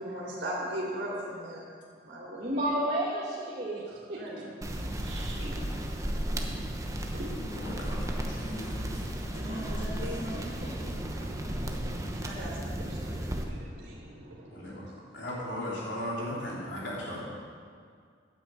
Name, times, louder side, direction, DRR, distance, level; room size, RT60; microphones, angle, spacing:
voice 1, 0.0-1.7 2.0-2.5 3.9-4.4 4.8-6.1 7.1-7.8 8.3-8.7 9.2-14.9, right 1 dB, 80° right, -5 dB, 2.9 m, -40 dB
voice 2, 2.4-3.8 4.1-4.4 9.6-9.7 10.3-10.4 10.8-11.0, right 1 dB, 40° right, -6 dB, 1.8 m, -32 dB
sound 1, 4.6-13.4, right 1 dB, 20° right, 1.0 m, -34 dB
voice 3, 7.4-9.0 9.3-10.3 14.5-14.8 15.1-17.3, left 1 dB, 75° left, -5 dB, 3.5 m, -38 dB
9.2 x 9.1 x 7.8 m, 2.1 s
head